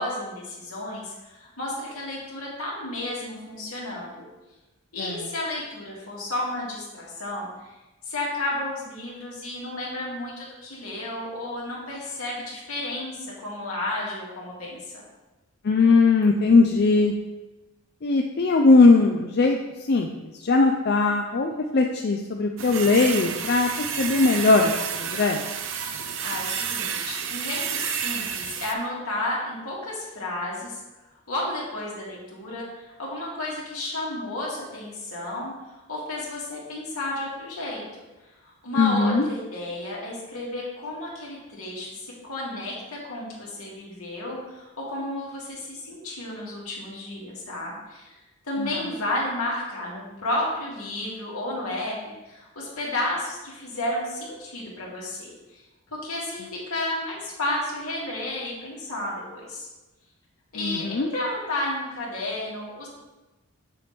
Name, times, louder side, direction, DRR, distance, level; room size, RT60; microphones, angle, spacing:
voice 1, 0.0-4.3 4.9-7.7 8.1-15.0 26.2-30.8 31.3-35.5 35.9-38.0 38.6-48.1 48.4-55.6 55.9-59.7 60.5-62.9, left 1 dB, 80° left, -4 dB, 2.5 m, -32 dB
voice 2, 15.6-17.1 18.0-19.6 19.9-24.7 25.0-25.4 38.8-39.3 48.6-48.8 60.6-61.1, left 3 dB, 45° left, 3 dB, 0.5 m, -20 dB
sound 1, 22.6-28.7, right 7 dB, 60° right, 0.7 m, -30 dB
7.7 x 6.9 x 3.4 m, 1.1 s
head